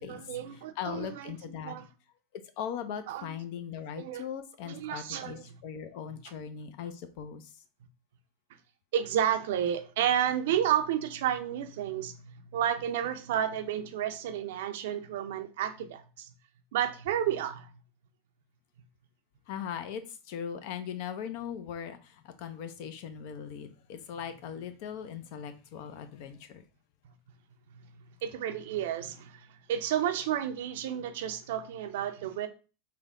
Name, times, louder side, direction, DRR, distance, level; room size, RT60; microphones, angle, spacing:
voice 1, 0.1-1.3 1.6-1.8 3.1-3.3 4.0-4.2 4.6-5.6 8.9-16.3 16.7-17.7 27.7-27.8 28.2-32.5, right 10 dB, 70° right, 0.5 m, -31 dB
voice 2, 0.8-1.8 2.6-7.5 19.5-26.6, left 8 dB, 60° left, 0.5 m, -39 dB
3.4 x 2.2 x 3.6 m
hypercardioid pair, 105°, 0 cm